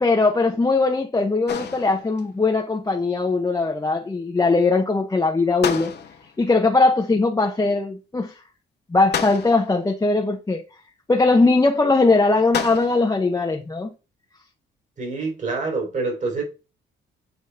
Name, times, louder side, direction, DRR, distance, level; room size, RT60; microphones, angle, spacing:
voice 1, 0.0-5.9 6.4-8.3 8.9-10.6 11.1-13.9, left 3 dB, 15° left, 0.8 m, -20 dB
sound 1, 1.5-2.4 5.6-6.4 9.1-9.9 12.5-13.2, left 7 dB, 60° left, 1.2 m, -30 dB
voice 2, 15.0-16.4, right 3 dB, 40° right, 3.3 m, -26 dB
7.6 x 4.0 x 3.4 m
cardioid pair, 90°, 20 cm